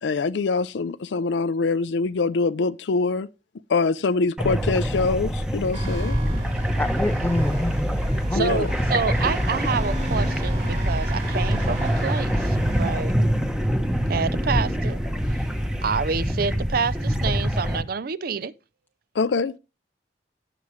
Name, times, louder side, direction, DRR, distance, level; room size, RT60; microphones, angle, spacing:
voice 1, 0.0-3.3 3.7-6.2 8.3-8.7 19.2-19.5, left 4 dB, 85° left, 0.5 m, -24 dB
sound 1, 4.4-17.8, equal, 5° right, 0.9 m, -25 dB
sound 2, 5.7-12.9, right 1 dB, 40° right, 4.8 m, -32 dB
voice 2, 6.8-8.6, left 1 dB, 10° left, 0.5 m, -27 dB
voice 3, 8.3-13.1 14.1-15.0 15.8-18.5, right 5 dB, 55° right, 0.5 m, -28 dB
17.5 x 6.1 x 3.1 m
head